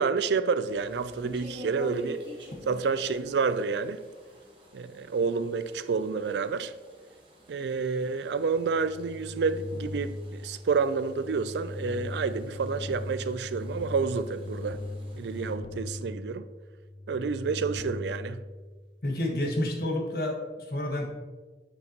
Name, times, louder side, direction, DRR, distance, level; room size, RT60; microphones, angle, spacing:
voice 1, 0.0-2.2 2.7-4.0 4.7-6.7 7.5-14.8 15.2-16.5 17.1-18.4, right 5 dB, 80° right, 0.4 m, -29 dB
sound 1, 0.6-15.5, equal, 30° right, 1.3 m, -48 dB
sound 2, 8.5-19.1, left 1 dB, 25° left, 0.3 m, -39 dB
voice 2, 19.0-21.1, left 1 dB, 55° left, 1.3 m, -29 dB
7.1 x 6.6 x 2.9 m
head